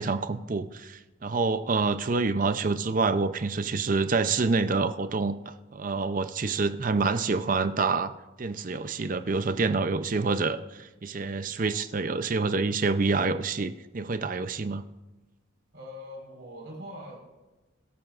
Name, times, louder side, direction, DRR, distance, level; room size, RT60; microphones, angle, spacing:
voice 1, 0.0-8.1 8.4-14.8, right 4 dB, 40° right, 11 dB, 0.5 m, -27 dB
voice 2, 15.7-17.2, equal, 55° right, -1 dB, 4.7 m, -42 dB
22.5 x 13.0 x 2.5 m, 1.1 s
head